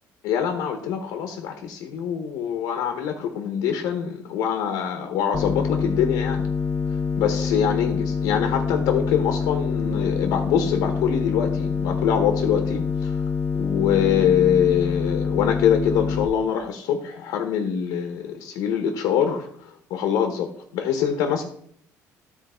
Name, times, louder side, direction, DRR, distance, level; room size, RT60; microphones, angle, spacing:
voice 1, 0.2-6.5 6.9-13.2 13.5-21.4, left 8 dB, 85° left, 5 dB, 1.2 m, -24 dB
sound 1, 5.3-16.3, left 5 dB, 20° left, 0.8 m, -26 dB
13.0 x 4.4 x 4.4 m, 0.62 s
cardioid pair, 125°, 6 cm